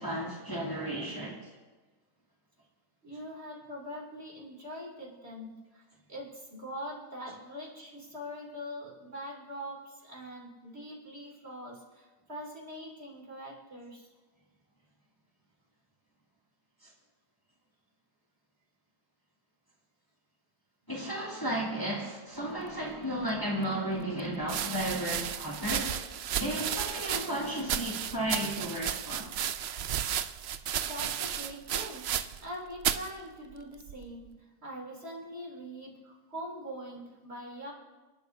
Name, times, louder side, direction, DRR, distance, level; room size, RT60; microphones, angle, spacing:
voice 1, 0.0-1.4 16.8-16.9 20.9-26.0 26.4-29.3, right 1 dB, 15° left, -5 dB, 2.3 m, -34 dB
voice 2, 3.0-5.8 6.1-14.1 30.8-32.1 32.4-37.7, equal, 40° right, -3 dB, 3.2 m, -43 dB
sound 1, 23.4-23.5 24.4-32.5 32.8-33.1 33.9-34.3, right 9 dB, 70° right, 0.6 m, -33 dB
29.0 x 11.0 x 2.7 m, 1.2 s
omnidirectional pair, 1.6 m